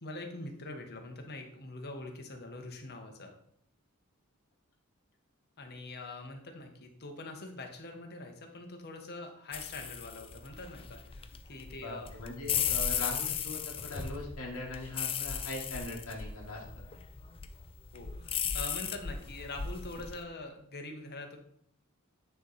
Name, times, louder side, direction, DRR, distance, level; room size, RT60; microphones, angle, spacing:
voice 1, 0.0-3.3 5.6-12.1 17.9-21.4, left 2 dB, 45° left, 3 dB, 1.1 m, -44 dB
sound 1, 9.5-20.2, left 7 dB, 25° left, 0.4 m, -36 dB
voice 2, 11.8-16.6, left 2 dB, 70° left, -1 dB, 1.6 m, -40 dB
9.2 x 3.1 x 4.1 m, 0.68 s
head